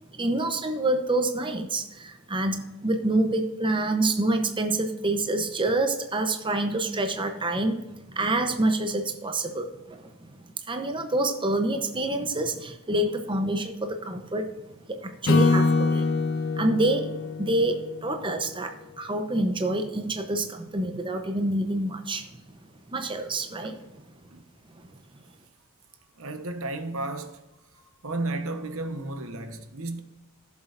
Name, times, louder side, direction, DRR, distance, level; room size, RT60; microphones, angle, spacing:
voice 1, 0.1-7.8 8.2-10.0 10.7-14.5 15.0-16.0 16.6-17.1 17.4-22.2 22.9-23.7, right 2 dB, 25° right, 0.8 m, -27 dB
Acoustic guitar / Strum, 15.3-18.6, left 3 dB, 65° left, 1.0 m, -24 dB
voice 2, 26.2-27.4 28.0-30.0, right 2 dB, 70° right, 1.0 m, -33 dB
16.5 x 7.3 x 2.6 m
head